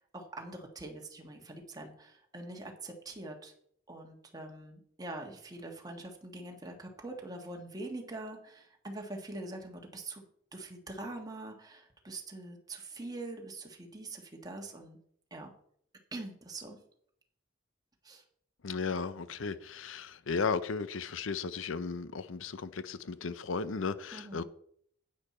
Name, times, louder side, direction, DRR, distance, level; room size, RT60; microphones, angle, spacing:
voice 1, 0.1-3.5 3.9-10.2 10.5-15.0 15.3-15.5 16.1-16.8 18.0-18.2 24.1-24.4, right 2 dB, 20° right, 1.4 m, -44 dB
voice 2, 18.6-24.4, left 5 dB, 90° left, 0.6 m, -35 dB
9.8 x 8.9 x 4.3 m
head